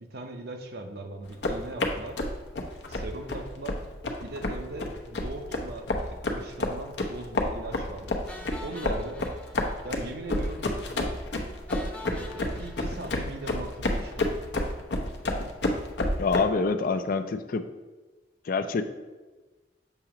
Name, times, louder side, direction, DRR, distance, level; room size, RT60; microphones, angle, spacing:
voice 1, 0.0-2.2 2.9-3.8 4.2-8.2 8.6-9.2 9.8-10.6 10.9-11.1 12.1-14.4, right 2 dB, 60° right, 5 dB, 0.7 m, -39 dB
sound 1, 1.3-16.4, left 1 dB, 70° left, 0.8 m, -30 dB
sound 2, 8.3-10.2 10.4-10.6 10.9-11.0 11.7-14.0, left 2 dB, 10° left, 0.7 m, -46 dB
voice 2, 16.2-17.6 18.5-18.8, left 4 dB, 50° left, 9 dB, 0.4 m, -26 dB
6.9 x 2.9 x 5.8 m, 1.2 s
head